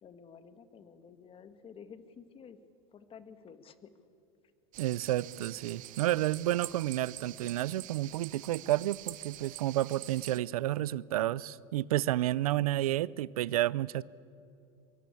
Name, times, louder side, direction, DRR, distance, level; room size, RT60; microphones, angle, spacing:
voice 1, 0.0-2.6 2.9-3.9, left 6 dB, 30° left, 11 dB, 1.8 m, -52 dB
sound 1, 4.7-10.4, right 16 dB, 45° right, 1.0 m, -46 dB
voice 2, 4.8-14.0, right 14 dB, 90° right, 22 dB, 0.6 m, -30 dB
24.5 x 23.0 x 8.5 m, 2.6 s
supercardioid pair, 115°, 18 cm